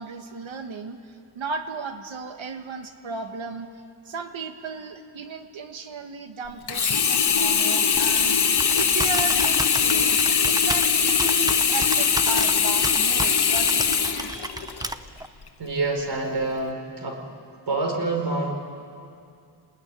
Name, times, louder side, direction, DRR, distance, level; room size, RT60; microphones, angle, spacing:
voice 1, 0.0-3.7 4.1-8.4 8.7-10.1 10.4-14.9, right 4 dB, 80° right, 6 dB, 2.0 m, -35 dB
Sink (filling or washing), 6.7-14.9 15.5-15.6, left 6 dB, 55° left, 1.5 m, -21 dB
Computer keyboard, 7.9-15.3, right 1 dB, 10° right, 0.8 m, -34 dB
voice 2, 15.6-17.2 17.7-18.5, right 2 dB, 60° right, 1 dB, 4.9 m, -27 dB
27.5 x 20.0 x 10.0 m, 2.4 s
wide cardioid pair, 115°, 46 cm